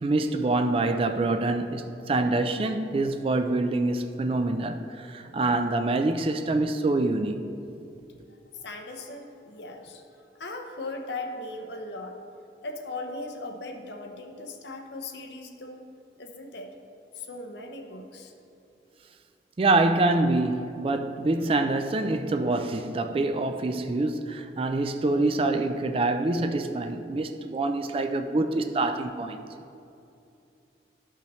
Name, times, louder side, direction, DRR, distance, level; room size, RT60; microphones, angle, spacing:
voice 1, 0.0-7.5 19.6-29.4, right 2 dB, 30° right, 0.3 m, -26 dB
voice 2, 8.5-10.0 10.3-12.2 12.6-15.9 16.2-16.7 17.1-18.3, left 2 dB, 70° left, 0.8 m, -38 dB
11.5 x 5.6 x 3.1 m
head